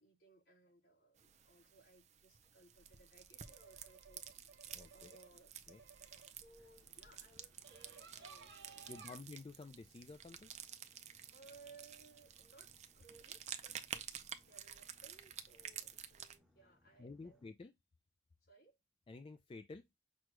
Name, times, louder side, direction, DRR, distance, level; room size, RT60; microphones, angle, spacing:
voice 1, 0.0-4.2 4.7-5.5 5.8-9.2 11.3-17.4 18.4-18.8, right 3 dB, 60° left, 3.4 m, -63 dB
sound 1, 1.2-16.4, right 9 dB, 40° right, 0.5 m, -52 dB
sound 2, 2.7-9.2, right 5 dB, 65° right, 0.8 m, -61 dB
voice 2, 4.7-5.2 5.7-5.8 8.9-10.5 17.0-17.7 19.1-19.9, left 3 dB, 30° left, 0.3 m, -52 dB
Boat Water vehicle, 6.5-17.5, left 1 dB, ahead, 0.7 m, -73 dB
6.1 x 2.3 x 3.0 m
head